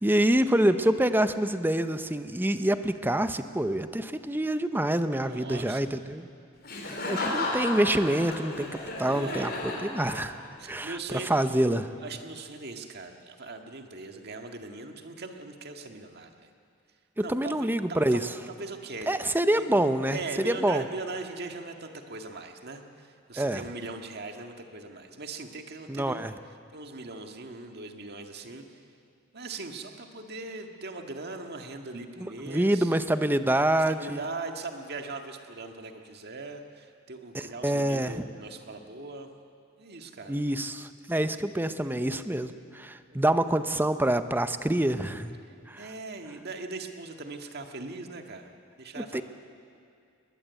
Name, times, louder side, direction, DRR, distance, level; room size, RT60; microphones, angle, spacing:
voice 1, 0.0-6.3 7.1-10.4 10.7-11.9 17.2-18.3 19.1-20.8 23.4-23.6 25.9-26.3 32.2-34.2 37.3-38.2 40.3-45.4 45.7-45.9 49.0-49.2, right 1 dB, 10° right, 10 dB, 0.8 m, -26 dB
voice 2, 5.1-5.9 9.1-9.8 10.6-11.3 12.0-16.5 17.2-19.2 19.5-19.7 20.1-26.3 26.7-28.8 29.3-32.9 33.7-39.4 39.8-40.4 43.1-43.6 45.8-49.2, right 3 dB, 55° right, 4 dB, 1.8 m, -40 dB
Laughter, 6.6-10.6, left 2 dB, 50° left, 4.4 m, -33 dB
21.0 x 20.5 x 8.3 m, 2.4 s
head